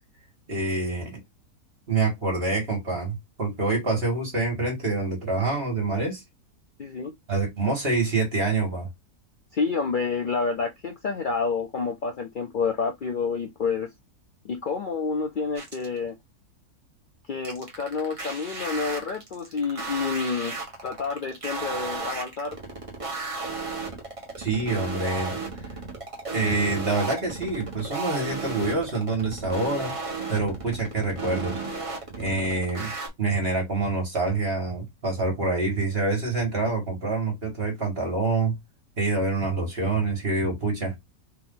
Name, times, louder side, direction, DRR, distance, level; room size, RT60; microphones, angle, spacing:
voice 1, 0.5-1.2 1.9-6.2 7.3-8.9 24.4-25.7 26.3-29.9 30.3-31.6 32.1-32.9 33.2-38.5 39.0-41.0, right 3 dB, 40° right, 1.7 m, -26 dB
voice 2, 6.8-7.1 9.5-13.9 14.4-16.1 17.3-22.6, left 5 dB, 90° left, 0.4 m, -29 dB
sound 1, 15.6-16.0 17.4-33.1, right 3 dB, 25° right, 1.2 m, -34 dB
4.5 x 2.6 x 3.7 m
omnidirectional pair, 1.6 m